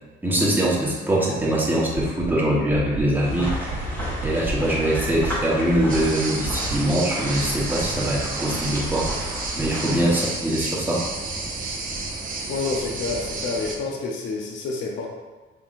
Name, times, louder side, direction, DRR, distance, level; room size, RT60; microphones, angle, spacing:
voice 1, 0.2-3.8 4.2-9.1 9.6-11.0, right 1 dB, 10° right, -4 dB, 1.2 m, -23 dB
sound 1, 1.9-2.3 2.7-3.0 3.4-3.8 4.2-4.5 4.9-5.3 5.7-6.0 6.4-6.8, right 8 dB, 70° right, 0.5 m, -32 dB
sound 2, 3.2-10.3, equal, 10° left, 1.2 m, -32 dB
sound 3, 5.9-13.8, right 3 dB, 45° right, 0.8 m, -31 dB
voice 2, 9.9-10.3 12.5-15.1, left 4 dB, 75° left, 0 dB, 0.7 m, -29 dB
4.7 x 3.4 x 2.5 m, 1.3 s
cardioid pair, 90°, 20 cm